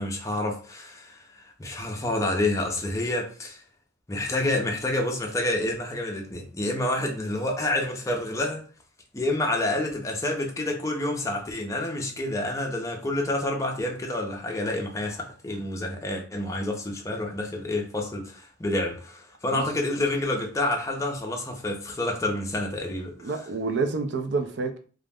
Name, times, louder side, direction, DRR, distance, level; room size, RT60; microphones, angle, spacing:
voice 1, 0.0-3.6 4.1-8.7 9.1-23.3, left 1 dB, 15° left, 0.4 m, -28 dB
voice 2, 23.2-24.8, right 4 dB, 65° right, 0.4 m, -28 dB
2.4 x 2.0 x 3.4 m
head